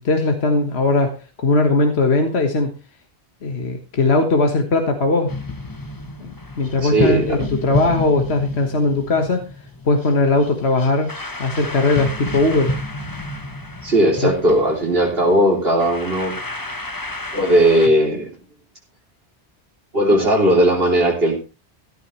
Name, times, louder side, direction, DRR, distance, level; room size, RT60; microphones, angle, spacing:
voice 1, 0.0-2.7 3.4-5.3 6.2-9.5 9.8-11.1 11.4-12.7 14.2-14.3, left 3 dB, 70° left, 5 dB, 1.7 m, -19 dB
sound 1, 5.3-17.9, left 1 dB, 20° left, 1.2 m, -30 dB
voice 2, 6.8-7.4 13.8-16.3 17.3-18.3 19.9-21.4, right 1 dB, 60° right, 0 dB, 3.3 m, -17 dB
14.5 x 12.5 x 3.1 m, 0.29 s
omnidirectional pair, 1.1 m